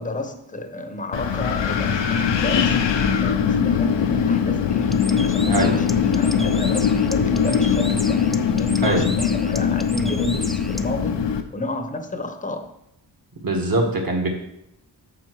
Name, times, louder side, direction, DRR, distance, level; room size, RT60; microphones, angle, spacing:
voice 1, 0.0-2.8 3.2-8.3 8.6-11.2 11.5-12.7, left 2 dB, 20° left, 0.8 m, -31 dB
Wind, 1.1-11.4, left 7 dB, 85° left, 0.8 m, -21 dB
Bird, 4.8-10.9, equal, ahead, 0.3 m, -36 dB
voice 2, 13.4-14.3, right 2 dB, 55° right, 1.9 m, -22 dB
7.4 x 5.5 x 4.7 m
wide cardioid pair, 110°, 43 cm